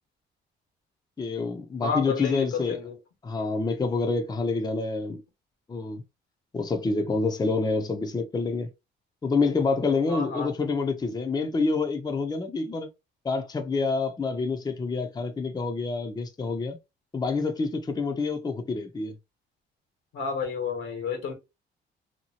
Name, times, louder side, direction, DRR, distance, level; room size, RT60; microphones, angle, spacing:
voice 1, 1.2-2.8 3.2-5.2 5.7-6.0 6.5-8.7 9.2-12.9 13.2-16.8 17.1-19.2, left 4 dB, 20° left, 0.5 m, -27 dB
voice 2, 1.8-2.9 10.1-10.5 20.1-21.3, left 5 dB, 90° left, 1.3 m, -30 dB
2.8 x 2.3 x 2.8 m
cardioid pair, 90°, 20 cm